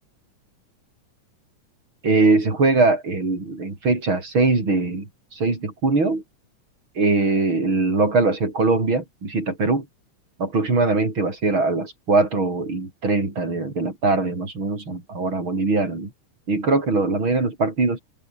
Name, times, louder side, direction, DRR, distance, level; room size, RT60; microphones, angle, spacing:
voice 1, 2.0-6.2 7.0-9.9 10.4-16.1 16.5-18.0, right 3 dB, 40° right, 6.4 m, -21 dB
open air
omnidirectional pair, 3.6 m